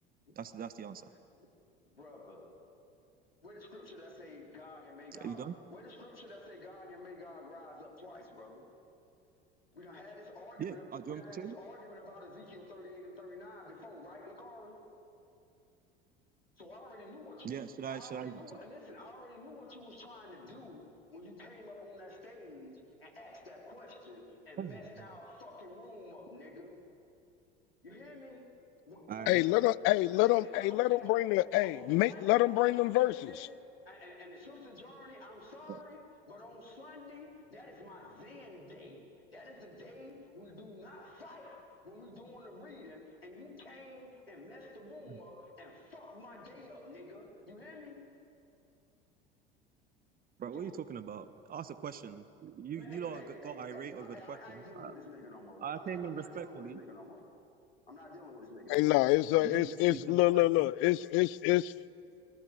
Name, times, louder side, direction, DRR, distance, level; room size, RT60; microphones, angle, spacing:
voice 1, 0.3-1.1 5.2-5.5 10.6-11.6 17.4-18.6 24.6-25.1 29.1-29.4 35.7-35.8 45.1-45.2 50.4-54.9 55.6-56.8 59.4-60.7, right 8 dB, 30° right, 12 dB, 1.3 m, -41 dB
voice 2, 1.8-2.5 3.4-8.7 9.7-14.9 16.6-26.8 27.8-28.6 28.8-29.7 30.1-48.1 50.5-50.8 52.7-57.3 57.9-59.0, left 2 dB, 85° left, 0 dB, 4.5 m, -50 dB
voice 3, 29.3-33.5 58.7-61.6, left 19 dB, 45° left, 19 dB, 0.7 m, -27 dB
29.5 x 23.0 x 8.2 m, 2.6 s
figure-of-eight pair, 70°, 29 cm